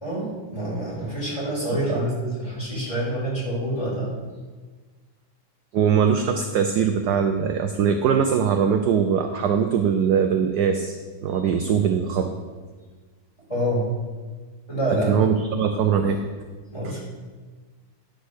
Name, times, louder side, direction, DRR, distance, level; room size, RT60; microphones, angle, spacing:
voice 1, 0.0-4.1 13.5-13.9 14.7-15.1 16.7-17.0, right 1 dB, 15° left, -6 dB, 3.5 m, -27 dB
voice 2, 5.7-11.0 11.2-12.3 15.1-16.2 16.8-16.9, right 7 dB, 70° right, 6 dB, 1.0 m, -21 dB
10.0 x 5.2 x 6.4 m, 1.4 s
omnidirectional pair, 2.3 m